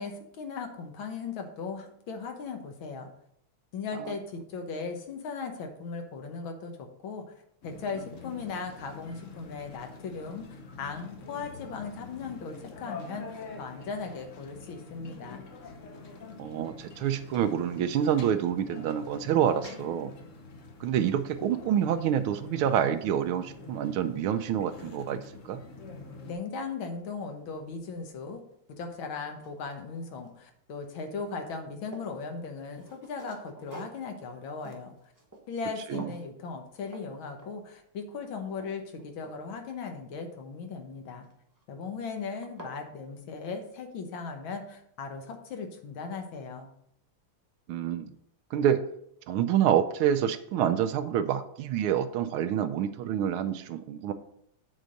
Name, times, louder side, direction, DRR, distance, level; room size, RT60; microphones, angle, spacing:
voice 1, 0.0-3.1 3.7-7.2 7.6-10.5 10.8-15.4 26.2-28.4 28.8-34.9 35.5-41.2 41.7-46.7, left 4 dB, 70° left, 5 dB, 1.8 m, -38 dB
sound 1, 7.6-26.3, left 4 dB, 50° left, 0.9 m, -46 dB
voice 2, 16.4-20.1 20.8-25.6 35.9-36.1 47.7-48.1 48.5-48.8 49.3-54.1, right 9 dB, 80° right, 11 dB, 1.4 m, -27 dB
sound 2, 28.5-28.6 29.1-30.5 30.8-32.2 32.7-35.7 35.9-36.3 36.9-37.1 37.4-37.8 38.2-39.8 41.2-41.6 42.1-42.2 42.4-42.8, right 1 dB, 15° right, 0.8 m, -50 dB
8.1 x 3.9 x 6.3 m, 0.72 s
omnidirectional pair, 2.4 m